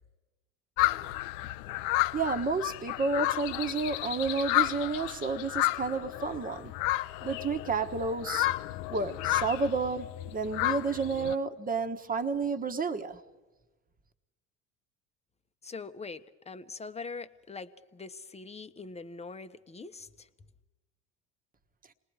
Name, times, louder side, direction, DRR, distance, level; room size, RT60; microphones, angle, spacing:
sound 1, 0.8-11.3, left 17 dB, 65° left, 0.6 m, -32 dB
voice 1, 2.1-6.7 7.2-8.5 8.9-13.2, right 4 dB, 25° right, 9 dB, 1.4 m, -31 dB
voice 2, 15.6-20.3, left 4 dB, 20° left, 11 dB, 1.0 m, -43 dB
27.5 x 20.0 x 4.9 m, 1.2 s
hypercardioid pair, 75°, 34 cm